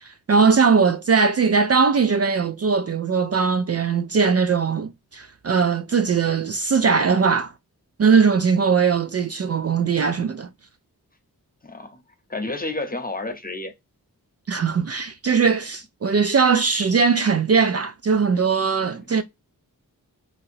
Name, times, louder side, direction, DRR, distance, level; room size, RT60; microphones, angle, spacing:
voice 1, 0.0-7.5 8.0-10.5 14.5-19.2, right 5 dB, 40° right, 0.4 m, -20 dB
voice 2, 11.6-12.0 12.3-13.7 18.8-19.2, left 2 dB, 25° left, 0.9 m, -31 dB
2.9 x 2.8 x 2.6 m
cardioid pair, 40°, 37 cm